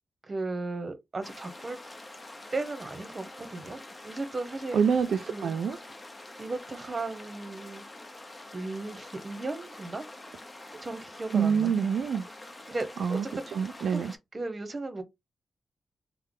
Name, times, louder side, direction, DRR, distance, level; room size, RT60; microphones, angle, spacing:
voice 1, 0.2-1.8 2.5-4.8 5.3-5.5 6.4-7.8 8.5-10.1 10.8-11.7 12.7-13.5 13.9-14.0 14.3-15.0, right 2 dB, 35° right, 1.0 m, -36 dB
sound 1, 1.2-14.2, left 2 dB, 20° left, 0.8 m, -46 dB
voice 2, 4.7-5.8 11.3-12.2 13.0-13.3 13.5-14.1, right 6 dB, 80° right, 0.4 m, -26 dB
3.2 x 2.1 x 3.8 m
cardioid pair, 85°, 0 cm